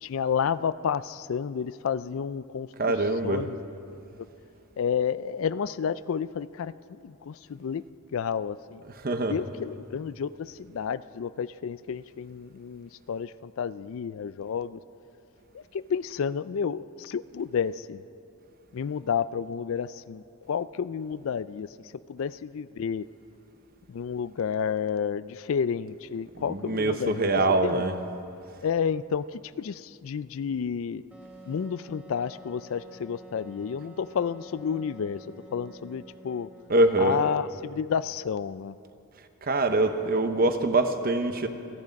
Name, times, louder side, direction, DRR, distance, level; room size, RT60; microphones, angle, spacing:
voice 1, 0.0-2.9 3.2-3.6 3.9-4.3 4.8-7.8 8.1-8.8 9.3-14.8 15.5-18.0 18.7-23.1 23.9-27.3 27.6-27.9 28.6-31.0 31.4-36.5 37.0-38.8, left 7 dB, 60° left, 16 dB, 0.4 m, -31 dB
voice 2, 2.8-3.4 9.0-9.3 26.3-27.9 36.7-37.2 39.4-41.5, right 2 dB, 45° right, 8 dB, 0.9 m, -24 dB
Wind instrument woodwind instrument, 31.1-37.6, right 1 dB, 5° right, 1.4 m, -50 dB
27.0 x 9.9 x 5.3 m, 2.6 s
head